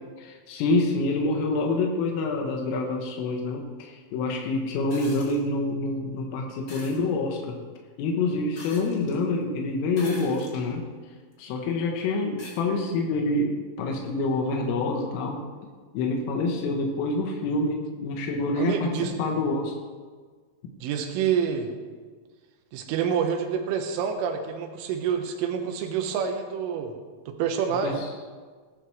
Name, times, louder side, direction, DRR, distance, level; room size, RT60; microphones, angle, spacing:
voice 1, 0.2-7.6 8.0-10.9 11.4-15.4 15.9-19.8 27.8-28.1, left 2 dB, 90° left, 1 dB, 3.8 m, -27 dB
sound 1, 4.9-5.4 6.7-7.0 8.6-9.2 9.9-10.7 11.3-11.4 12.4-12.6 14.1-14.2, left 2 dB, 60° left, 1.1 m, -43 dB
voice 2, 18.6-19.1 20.8-21.7 22.7-26.9 27.3-28.0, right 7 dB, 80° right, 4 dB, 3.6 m, -27 dB
18.5 x 11.0 x 3.2 m, 1.5 s
omnidirectional pair, 5.7 m